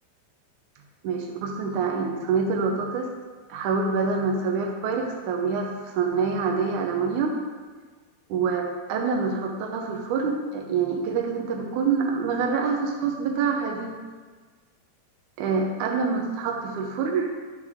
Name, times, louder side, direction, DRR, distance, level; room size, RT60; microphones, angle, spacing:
voice 1, 1.0-3.1 3.5-7.4 8.3-13.9 15.4-17.3, right 5 dB, 70° right, 1 dB, 2.1 m, -26 dB
11.0 x 8.2 x 3.6 m, 1.5 s
omnidirectional pair, 4.2 m